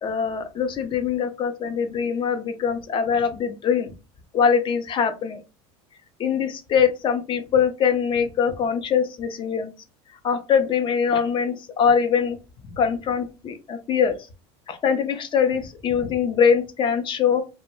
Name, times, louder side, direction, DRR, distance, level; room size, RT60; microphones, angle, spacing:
voice 1, 0.0-3.9 4.3-5.4 6.2-9.7 10.2-12.4 12.7-14.1 14.7-17.4, left 7 dB, 35° left, 9 dB, 0.5 m, -22 dB
2.2 x 2.0 x 2.9 m, 0.30 s
supercardioid pair, 115°, 15 cm